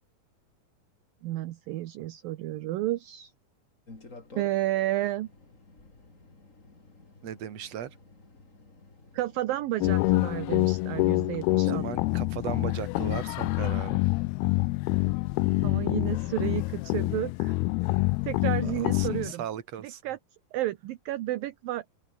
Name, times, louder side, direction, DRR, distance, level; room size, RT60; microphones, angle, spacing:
voice 1, 1.2-3.3 4.4-5.3 9.1-11.8 15.6-17.6 18.2-19.4 19.8-20.2 20.5-21.8, right 15 dB, 70° right, 2.5 m, -31 dB
sound 1, 3.9-13.7, left 3 dB, 20° left, 3.7 m, -53 dB
voice 2, 7.2-7.9 11.5-14.0 18.6-20.0, right 9 dB, 45° right, 2.9 m, -37 dB
sound 2, 9.8-19.3, left 22 dB, 85° left, 2.4 m, -26 dB
open air
omnidirectional pair, 4.6 m